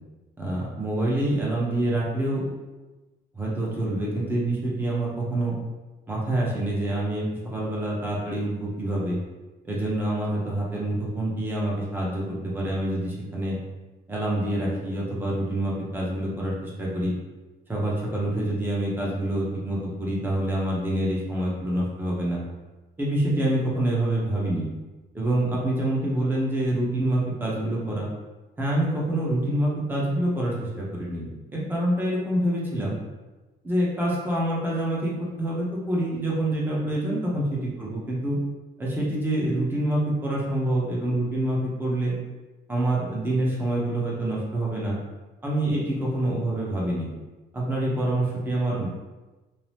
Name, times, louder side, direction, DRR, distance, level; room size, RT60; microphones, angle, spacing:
voice 1, 0.4-2.5 3.3-5.5 6.1-9.2 9.6-13.6 14.1-17.2 17.7-22.4 23.0-24.7 25.1-28.1 28.6-33.0 33.6-38.4 38.8-42.1 42.7-45.0 45.4-47.1 47.5-48.9, right 1 dB, 10° right, -5 dB, 0.8 m, -26 dB
2.7 x 2.1 x 3.3 m, 1.2 s
cardioid pair, 110°, 17 cm